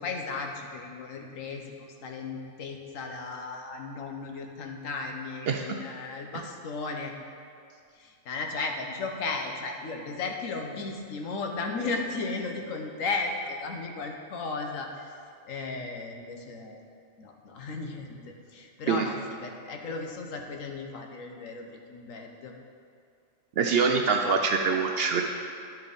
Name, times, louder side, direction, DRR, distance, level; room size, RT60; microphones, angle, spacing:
voice 1, 0.0-1.6 2.0-7.1 7.9-15.0 15.5-16.8 17.2-22.5, left 3 dB, 80° left, 3 dB, 1.2 m, -35 dB
voice 2, 23.6-25.2, right 5 dB, 65° right, 3 dB, 0.6 m, -24 dB
10.5 x 4.5 x 5.1 m, 2.3 s
omnidirectional pair, 1.4 m